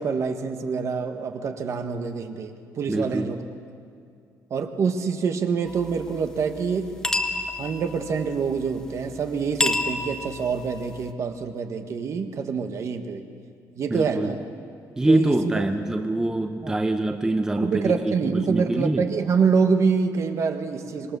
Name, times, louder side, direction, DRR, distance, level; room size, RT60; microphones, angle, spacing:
voice 1, 0.0-3.4 4.5-6.9 7.6-13.2 13.8-14.4 15.1-15.7 16.6-16.8 17.6-21.2, right 5 dB, 45° right, 7 dB, 1.5 m, -26 dB
voice 2, 2.9-3.3 13.9-14.3 15.0-19.1, right 2 dB, 10° right, 6 dB, 0.7 m, -24 dB
sound 1, 5.7-11.1, left 2 dB, 10° left, 1.0 m, -31 dB
25.5 x 21.0 x 6.9 m, 2.3 s
cardioid pair, 155°, 7 cm